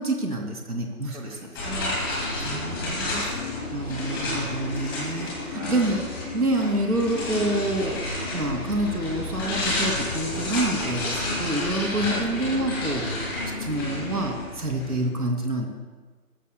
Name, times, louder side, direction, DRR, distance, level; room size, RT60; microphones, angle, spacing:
voice 1, 0.0-1.4 2.4-3.2 3.7-6.0 6.3-8.0 8.3-13.0 13.6-15.7, right 1 dB, 85° right, 1 dB, 2.9 m, -27 dB
voice 2, 1.0-3.5 5.5-5.9 12.0-12.3, right 3 dB, 60° right, 0 dB, 2.0 m, -39 dB
sound 1, 1.5-15.1, left 2 dB, 15° left, 2.2 m, -30 dB
19.0 x 13.5 x 2.3 m, 1.3 s
figure-of-eight pair, 160°, 45 cm